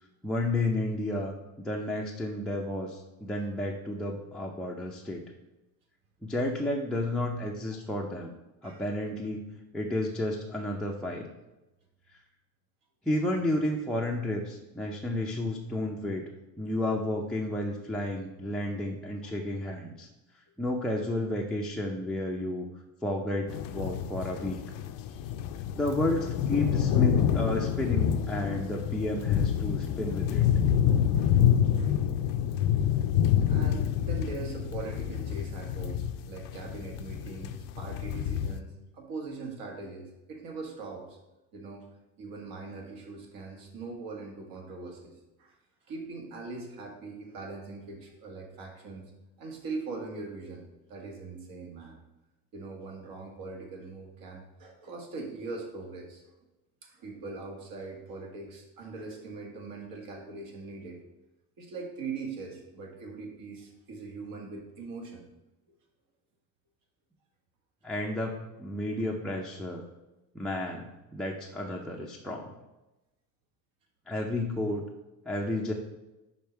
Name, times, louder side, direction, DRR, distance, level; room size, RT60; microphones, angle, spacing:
voice 1, 0.2-5.2 6.2-8.4 8.6-9.4 9.7-11.3 13.0-16.3 16.6-20.1 20.6-22.7 23.0-24.6 25.7-30.5 67.8-69.8 70.3-72.5 74.1-74.8 75.3-75.7, left 1 dB, ahead, -3 dB, 0.5 m, -32 dB
sound 1, 23.5-38.6, left 9 dB, 65° left, 0.5 m, -27 dB
voice 2, 33.5-41.2 41.5-41.9 42.2-45.6 45.9-49.1 49.4-52.0 52.5-56.3 56.8-61.0 61.6-65.2 71.7-71.8, right 3 dB, 60° right, 1 dB, 1.7 m, -41 dB
5.5 x 5.2 x 4.4 m, 1.0 s
cardioid pair, 130°, 38 cm